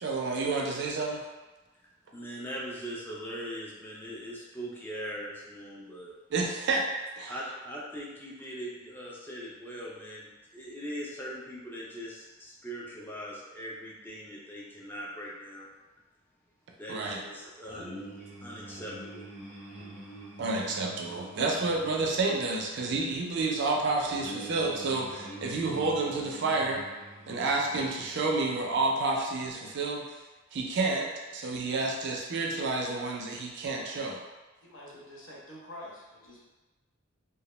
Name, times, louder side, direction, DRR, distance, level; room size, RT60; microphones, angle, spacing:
voice 1, 0.0-1.2 6.3-6.8 7.2-7.3 16.9-17.2 20.4-26.8 27.3-30.1 30.5-34.2, right 3 dB, 60° right, 0 dB, 0.4 m, -30 dB
voice 2, 2.1-6.1 7.3-15.7 16.8-17.9 18.4-19.3, equal, 10° left, -5 dB, 0.4 m, -41 dB
sound 1, 17.7-28.9, right 1 dB, 80° left, 1.3 m, -47 dB
voice 3, 34.6-36.4, left 1 dB, 65° left, -5 dB, 0.7 m, -46 dB
2.2 x 2.0 x 2.9 m, 1.2 s
head